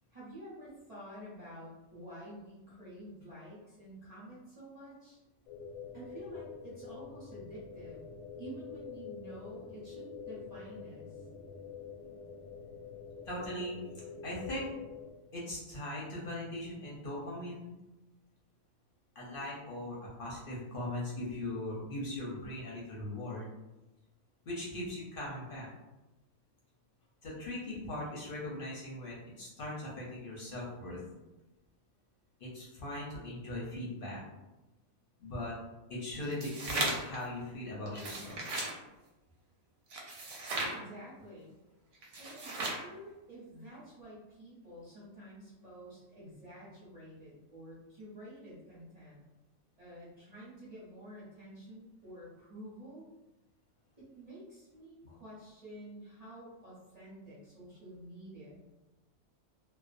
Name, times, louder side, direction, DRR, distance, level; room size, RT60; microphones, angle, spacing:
voice 1, 0.1-5.2 5.9-11.2 40.7-41.5 42.2-49.2 49.8-53.1 54.0-58.7, right 1 dB, 35° right, -8 dB, 0.8 m, -49 dB
sound 1, 5.5-15.1, left 6 dB, 90° left, 1.1 m, -46 dB
voice 2, 13.3-13.8 14.2-14.7 15.3-17.7 19.2-23.5 24.5-25.7 27.2-31.0 32.4-34.2 35.2-35.6 35.9-38.4, left 1 dB, 55° left, -5 dB, 0.6 m, -39 dB
sound 2, 36.2-37.2 37.9-38.7 39.9-40.8 42.0-42.9, right 2 dB, 70° right, 0.8 m, -36 dB
2.4 x 2.1 x 2.5 m, 1.0 s
omnidirectional pair, 1.4 m